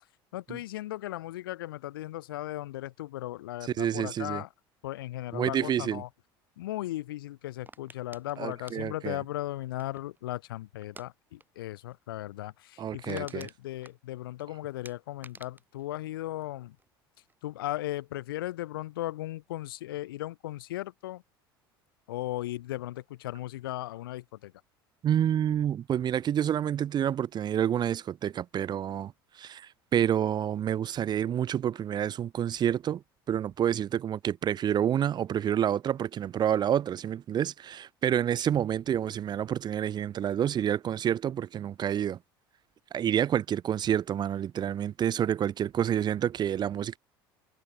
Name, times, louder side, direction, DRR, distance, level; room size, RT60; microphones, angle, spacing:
voice 1, 0.3-4.5 4.8-6.1 6.6-16.8 17.4-21.2 22.1-24.5, left 15 dB, 70° left, 2.0 m, -37 dB
voice 2, 3.8-4.4 5.3-6.0 8.4-9.2 12.8-13.5 25.0-33.0 33.3-42.2 42.9-47.0, right 10 dB, 35° right, 1.0 m, -28 dB
sound 1, 7.7-10.2 10.8-11.1 11.4-11.6 11.9-12.0 12.4-12.5 12.8-14.4 14.8-16.9 17.2-17.6, right 3 dB, 15° right, 6.9 m, -51 dB
figure-of-eight pair, 70°, 12 cm